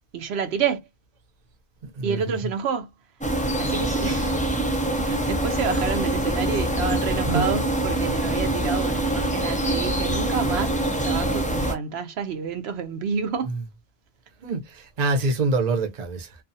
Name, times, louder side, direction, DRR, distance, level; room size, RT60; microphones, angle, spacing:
voice 1, 0.1-0.8 2.0-2.9 3.6-4.5 5.0-13.5 15.2-15.4, right 6 dB, 85° right, 0.9 m, -29 dB
voice 2, 1.9-2.4 7.3-7.5 13.5-13.6 14.4-16.4, right 3 dB, 45° right, 0.8 m, -25 dB
sound 1, 3.2-11.7, right 1 dB, 10° left, 0.3 m, -24 dB
2.4 x 2.4 x 2.6 m
omnidirectional pair, 1.1 m